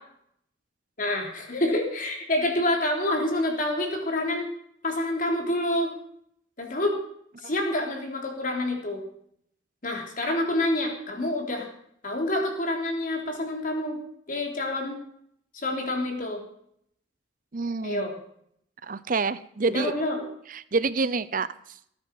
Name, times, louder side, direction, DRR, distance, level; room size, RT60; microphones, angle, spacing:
voice 1, 1.0-4.5 4.8-5.9 6.6-7.0 7.4-9.0 9.8-11.7 12.0-14.0 14.3-15.0 15.5-16.4 17.8-18.1 19.7-20.2, left 1 dB, 45° left, 2 dB, 3.5 m, -27 dB
voice 2, 17.5-18.1 18.8-19.9 20.5-21.5, right 4 dB, 45° right, 16 dB, 0.7 m, -27 dB
18.5 x 9.8 x 5.4 m, 0.69 s
head